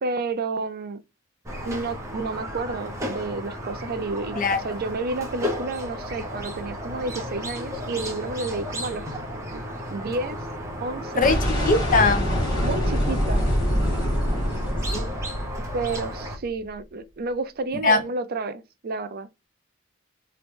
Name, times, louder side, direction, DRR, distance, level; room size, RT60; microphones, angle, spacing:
voice 1, 0.0-1.0 1.7-9.1 9.5-9.6 9.9-10.4 10.8-11.7 12.6-13.5 15.7-19.3, right 3 dB, 50° right, 0.5 m, -30 dB
Squeak, 1.4-16.4, equal, 15° right, 0.9 m, -34 dB
voice 2, 11.2-12.3 14.9-15.1 17.8-18.0, left 3 dB, 40° left, 0.5 m, -21 dB
sound 1, 11.2-16.3, equal, 20° left, 1.7 m, -25 dB
3.0 x 2.9 x 3.4 m
head